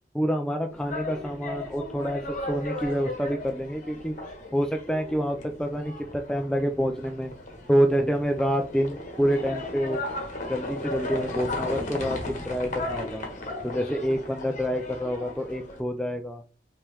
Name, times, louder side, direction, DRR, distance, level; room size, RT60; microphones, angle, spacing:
voice 1, 0.1-4.1 4.5-7.3 7.7-10.0 10.5-13.3 13.6-16.4, equal, 5° left, 4 dB, 0.3 m, -27 dB
sound 1, 0.7-15.8, left 2 dB, 45° left, 1.2 m, -36 dB
5.4 x 3.2 x 2.9 m, 0.35 s
head